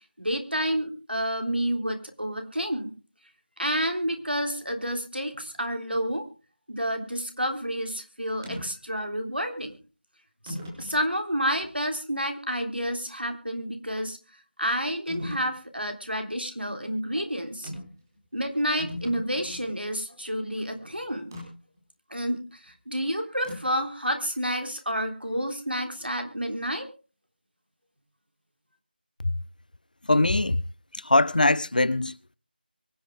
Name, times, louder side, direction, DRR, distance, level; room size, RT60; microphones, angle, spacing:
voice 1, 0.2-2.9 3.6-6.3 6.7-9.7 10.4-14.2 14.6-17.7 18.3-21.3 22.1-26.9, equal, 85° right, 3.5 m, -29 dB
sound 1, 8.4-8.7 9.6-9.7 10.5-11.0 11.6-11.7 15.1-15.5 17.6-18.0 18.3-18.4 18.6-19.7 21.3-21.5 23.4-23.8, left 1 dB, 20° right, 4.3 m, -38 dB
voice 2, 30.0-30.6 30.9-32.4, left 2 dB, 55° left, 0.7 m, -22 dB
24.0 x 9.4 x 3.7 m
figure-of-eight pair, 165°, 5 cm